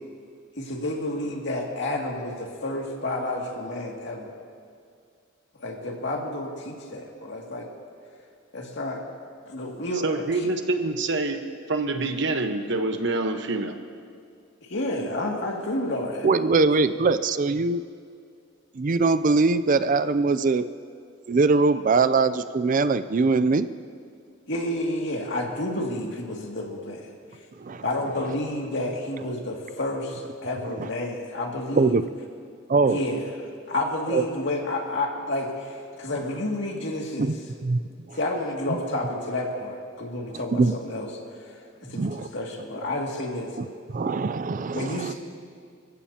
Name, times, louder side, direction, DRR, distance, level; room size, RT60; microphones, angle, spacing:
voice 1, 0.6-4.3 5.6-7.7 8.5-9.0 9.5-10.2 14.6-16.3 24.5-27.1 27.8-32.0 32.9-33.2 33.7-37.3 38.1-41.1 41.5-41.6 41.9-43.5 44.7-45.1, left 1 dB, 60° left, -1 dB, 2.4 m, -30 dB
voice 2, 10.0-11.4 11.7-13.8, right 2 dB, 60° right, 6 dB, 1.2 m, -26 dB
voice 3, 16.2-17.8 18.7-20.7 21.3-23.7 27.6-27.8 30.8-30.9 31.7-32.0 32.7-33.0 34.1-34.2 37.2-37.3 37.6-38.2 40.3-40.7 41.9-42.3 43.9-45.1, right 3 dB, 40° right, 12 dB, 0.4 m, -22 dB
29.5 x 16.0 x 2.9 m, 2.2 s
head